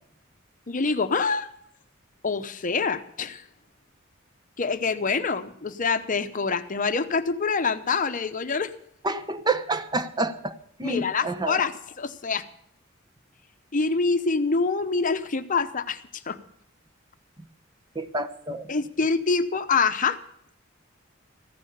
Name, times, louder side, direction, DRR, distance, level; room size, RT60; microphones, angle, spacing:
voice 1, 0.7-1.5 2.2-3.4 4.6-8.7 10.8-12.5 13.7-16.0 16.3-16.4 18.7-20.2, left 4 dB, 40° left, 10 dB, 0.8 m, -25 dB
voice 2, 9.0-10.5 10.8-11.6 18.0-18.7, right 2 dB, 20° right, 10 dB, 0.9 m, -28 dB
15.0 x 10.5 x 6.7 m, 0.68 s
head